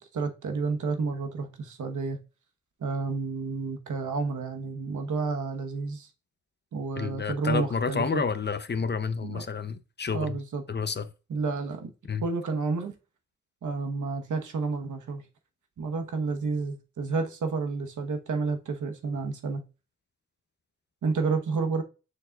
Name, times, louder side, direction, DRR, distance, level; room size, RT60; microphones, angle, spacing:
voice 1, 0.0-2.2 2.8-6.1 6.7-8.2 9.2-9.4 10.1-10.6 11.3-11.9 12.2-12.9 13.6-15.2 15.8-19.6 21.0-21.8, right 4 dB, 85° right, 1.2 m, -30 dB
voice 2, 7.0-10.4 10.7-11.1 12.1-12.2, left 5 dB, 35° left, 0.6 m, -30 dB
6.7 x 6.4 x 2.4 m
wide cardioid pair, 100°, 30 cm